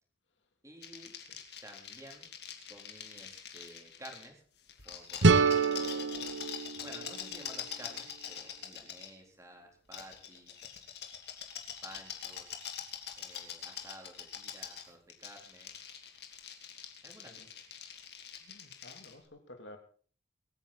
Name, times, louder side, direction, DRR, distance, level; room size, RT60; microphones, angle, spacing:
voice 1, 0.6-1.1 1.6-2.3 2.7-4.4 4.8-6.4 6.8-10.5 11.8-12.6 13.2-15.7 17.0-17.3, right 1 dB, 15° right, 2 dB, 3.8 m, -53 dB
sound 1, 0.8-4.3 4.7-9.1 9.9-19.1, left 8 dB, 60° left, 2.8 m, -44 dB
sound 2, 5.2-8.1, right 4 dB, 75° right, 1.0 m, -28 dB
voice 2, 18.4-19.8, left 1 dB, 75° left, 4 dB, 3.2 m, -52 dB
24.5 x 9.8 x 4.2 m, 0.44 s
head